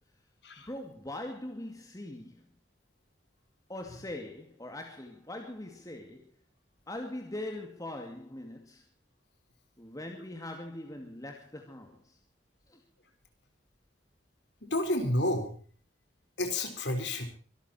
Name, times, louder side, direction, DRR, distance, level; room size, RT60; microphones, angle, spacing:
voice 1, 0.6-2.5 3.7-6.3 6.9-8.8 9.8-12.2 12.7-12.8, left 1 dB, 20° left, 2.4 m, -41 dB
voice 2, 14.6-15.5 16.4-17.3, left 1 dB, 70° left, 4.7 m, -30 dB
24.5 x 13.5 x 4.4 m
head